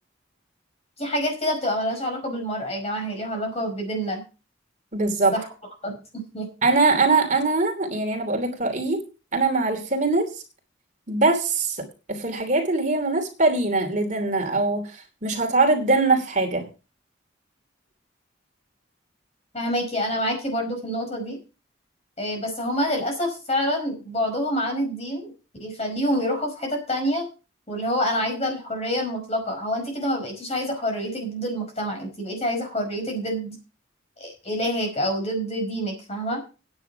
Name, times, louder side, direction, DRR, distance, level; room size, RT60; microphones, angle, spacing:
voice 1, 1.0-4.2 5.3-5.4 5.8-6.5 19.5-21.4 22.2-25.3 25.6-27.3 27.7-33.5 34.2-36.4, equal, 35° left, 3 dB, 5.1 m, -27 dB
voice 2, 4.9-5.3 6.6-9.0 9.3-10.3 11.1-16.7, right 3 dB, 40° right, 4 dB, 2.9 m, -22 dB
10.0 x 8.8 x 5.8 m, 0.32 s
head